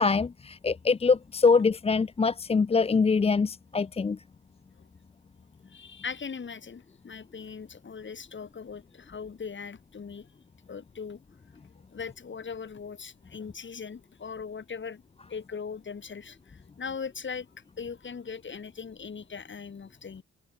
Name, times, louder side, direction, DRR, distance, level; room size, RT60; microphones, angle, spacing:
voice 1, 0.0-4.2, left 4 dB, 20° left, 0.6 m, -24 dB
voice 2, 5.7-10.3 10.7-11.2 11.9-15.0 15.3-17.5 17.8-20.2, left 6 dB, 40° left, 4.8 m, -39 dB
cardioid pair, 90°, 30 cm